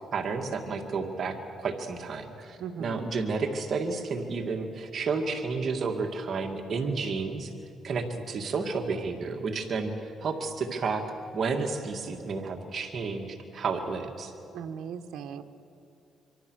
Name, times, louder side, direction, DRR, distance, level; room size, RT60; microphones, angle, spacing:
voice 1, 0.1-7.5 7.8-11.0 11.3-14.3, right 4 dB, 50° right, 4 dB, 2.1 m, -31 dB
voice 2, 2.6-3.1 14.5-15.4, right 7 dB, 75° right, 8 dB, 1.2 m, -38 dB
25.5 x 25.0 x 6.4 m, 2.7 s
cardioid pair, 90°, 0 cm